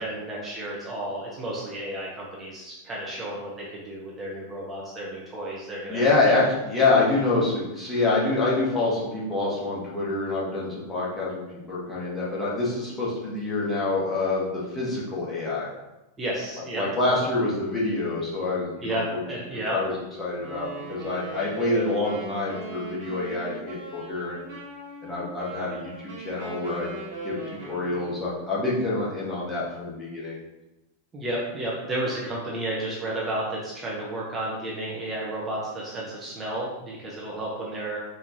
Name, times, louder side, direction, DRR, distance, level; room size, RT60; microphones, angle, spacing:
voice 1, 0.0-6.4 16.2-16.8 18.8-19.8 31.1-38.0, right 1 dB, 20° right, -5 dB, 0.7 m, -32 dB
voice 2, 5.9-11.4 11.7-15.7 16.7-19.2 19.7-24.4 25.0-26.9 27.2-30.4, left 2 dB, 15° left, -6 dB, 1.3 m, -26 dB
Wind instrument woodwind instrument, 20.3-28.3, right 2 dB, 55° right, 1.4 m, -39 dB
4.4 x 2.7 x 2.7 m, 0.98 s
figure-of-eight pair, 90°, 0 cm